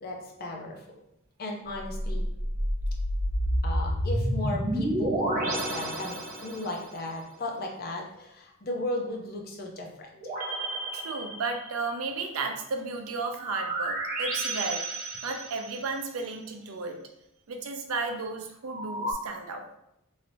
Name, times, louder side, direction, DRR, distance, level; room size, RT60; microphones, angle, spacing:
voice 1, 0.0-0.8 1.4-2.3 3.6-10.1, left 1 dB, 45° left, 1 dB, 0.5 m, -36 dB
sound 1, 1.8-6.8 10.2-12.0 13.4-16.0 18.7-19.1, right 1 dB, 40° right, 0.7 m, -30 dB
voice 2, 10.9-14.9 15.2-17.0 17.5-19.8, right 3 dB, 80° right, 4 dB, 0.5 m, -34 dB
3.1 x 2.8 x 2.6 m, 0.82 s
head